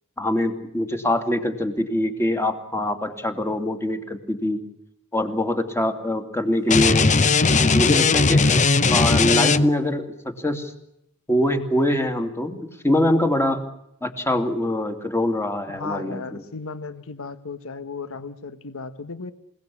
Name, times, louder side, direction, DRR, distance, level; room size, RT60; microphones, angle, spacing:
voice 1, 0.2-4.6 5.1-7.1 7.6-8.4 8.9-10.7 11.3-13.6 14.0-16.4, left 1 dB, 10° left, 7 dB, 2.7 m, -24 dB
sound 1, 6.7-9.9, left 4 dB, 35° left, 0.9 m, -18 dB
voice 2, 15.7-19.3, left 4 dB, 65° left, 11 dB, 1.4 m, -35 dB
28.5 x 18.5 x 8.6 m, 0.79 s
head